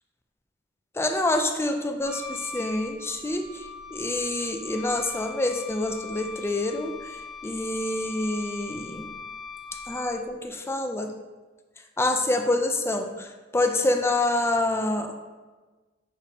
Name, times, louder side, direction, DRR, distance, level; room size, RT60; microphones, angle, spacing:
voice 1, 1.0-3.5 3.9-6.9 7.4-9.1 9.9-11.1 12.0-13.3 13.5-15.1, left 2 dB, 15° left, 5 dB, 0.4 m, -26 dB
Wind instrument woodwind instrument, 2.0-10.3, left 3 dB, 40° right, 0.9 m, -40 dB
6.5 x 5.0 x 2.8 m, 1.3 s
head